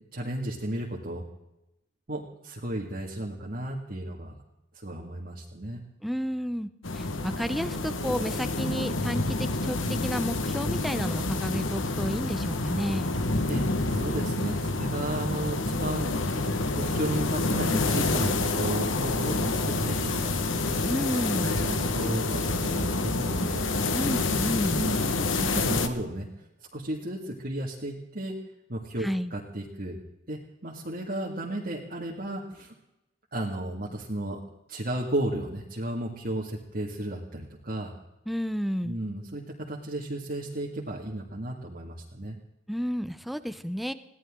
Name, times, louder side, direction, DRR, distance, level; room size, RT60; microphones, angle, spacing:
voice 1, 0.1-1.2 2.1-4.3 4.8-5.8 13.5-13.6 13.9-16.1 16.8-20.4 21.2-23.7 24.8-26.5 26.7-28.4 28.7-30.0 30.3-32.7 33.3-34.4 34.7-37.9 38.8-42.4, right 1 dB, 50° right, -3 dB, 2.2 m, -34 dB
voice 2, 6.0-13.1 20.9-21.5 23.9-24.9 29.0-29.3 38.3-39.0 42.7-43.9, equal, ahead, 11 dB, 0.7 m, -31 dB
sound 1, 6.8-25.9, left 2 dB, 90° left, 1.5 m, -28 dB
21.5 x 17.0 x 3.8 m, 0.89 s
head